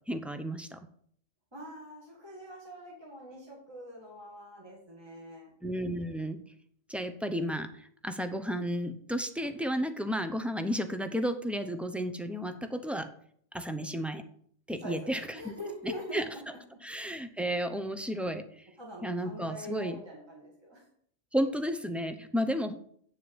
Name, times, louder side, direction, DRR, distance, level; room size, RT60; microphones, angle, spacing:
voice 1, 0.1-0.8 5.6-6.4 6.9-13.1 13.5-14.2 14.7-15.5 15.8-16.2 16.8-18.6 19.0-20.0 21.3-22.7, equal, ahead, 8 dB, 0.5 m, -32 dB
voice 2, 1.5-5.5 14.8-16.6 18.8-20.8, equal, 20° right, -3 dB, 2.4 m, -44 dB
8.5 x 7.2 x 7.2 m, 0.62 s
omnidirectional pair, 1.4 m